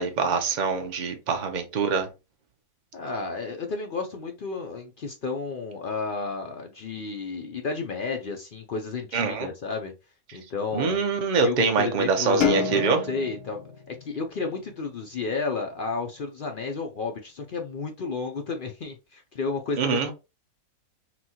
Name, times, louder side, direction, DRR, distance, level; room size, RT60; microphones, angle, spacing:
voice 1, 0.0-2.1 9.1-9.5 10.7-13.0 19.8-20.1, right 5 dB, 40° right, 0.7 m, -24 dB
voice 2, 2.9-9.9 10.3-11.0 11.4-20.1, left 4 dB, 70° left, 0.5 m, -32 dB
sound 1, 12.4-15.0, left 7 dB, 85° left, 1.2 m, -29 dB
5.8 x 2.2 x 2.9 m
omnidirectional pair, 1.6 m